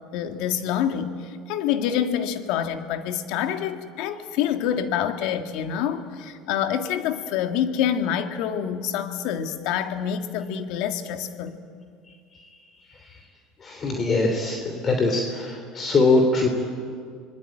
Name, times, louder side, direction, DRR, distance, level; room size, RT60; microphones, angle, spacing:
voice 1, 0.1-11.6, left 9 dB, 70° left, 7 dB, 1.9 m, -27 dB
voice 2, 13.6-16.5, left 3 dB, 35° left, 4 dB, 3.2 m, -22 dB
26.0 x 20.5 x 9.0 m, 2.1 s
supercardioid pair, 90°, 0 cm